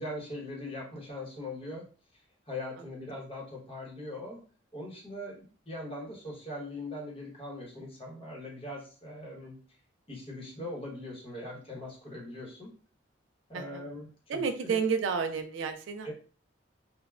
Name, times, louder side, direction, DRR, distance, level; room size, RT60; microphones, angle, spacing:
voice 1, 0.0-1.8 2.5-4.4 4.7-9.6 10.1-12.7 13.5-14.8 16.0-16.1, left 1 dB, 30° left, -3 dB, 0.9 m, -41 dB
voice 2, 14.3-16.1, right 6 dB, 70° right, 8 dB, 0.3 m, -31 dB
3.2 x 2.1 x 2.3 m, 0.40 s
head